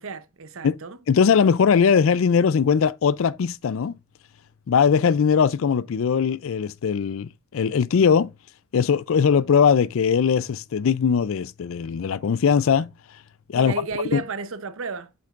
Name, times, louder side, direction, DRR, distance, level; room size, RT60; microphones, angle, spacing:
voice 1, 0.0-1.0 13.5-15.1, right 4 dB, 65° right, 0.7 m, -32 dB
voice 2, 1.1-4.0 4.7-8.3 8.7-12.9 13.5-13.7 14.1-14.2, left 6 dB, 65° left, 0.4 m, -20 dB
7.8 x 6.7 x 2.5 m
head